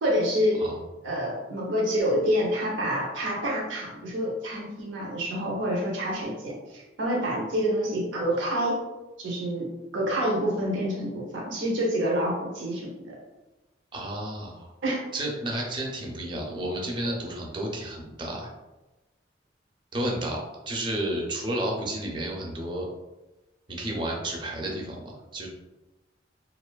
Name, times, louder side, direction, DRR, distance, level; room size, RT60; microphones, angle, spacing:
voice 1, 0.0-0.6 1.0-8.8 9.2-9.7 9.9-13.1 14.8-15.0, equal, 90° right, -3 dB, 0.6 m, -27 dB
voice 2, 13.9-14.7 15.1-18.5 19.9-22.9 23.7-25.5, right 1 dB, 25° right, -1 dB, 0.4 m, -31 dB
2.5 x 2.3 x 2.2 m, 1.1 s
head